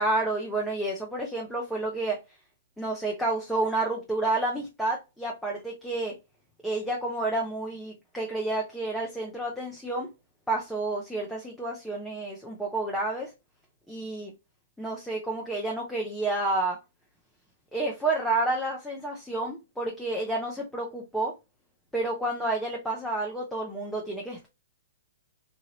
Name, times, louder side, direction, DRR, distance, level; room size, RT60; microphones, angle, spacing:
voice 1, 0.0-2.2 2.8-6.1 6.6-10.1 10.5-13.3 13.9-14.3 14.8-16.8 17.7-21.3 21.9-24.5, right 2 dB, ahead, 0.7 m, -30 dB
3.0 x 2.5 x 2.8 m
hypercardioid pair, 120°, 0 cm